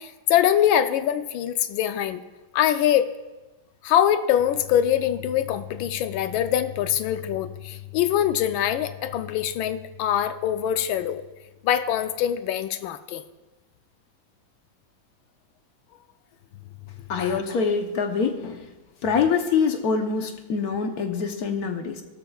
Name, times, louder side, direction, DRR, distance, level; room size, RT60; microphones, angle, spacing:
voice 1, 0.0-2.2 2.5-3.1 3.8-11.2 11.6-13.2 17.2-17.4, left 10 dB, 85° left, 10 dB, 1.4 m, -23 dB
voice 2, 17.1-18.6 19.0-22.0, left 5 dB, 60° left, 5 dB, 1.2 m, -25 dB
17.0 x 12.5 x 2.3 m, 1.1 s
omnidirectional pair, 2.1 m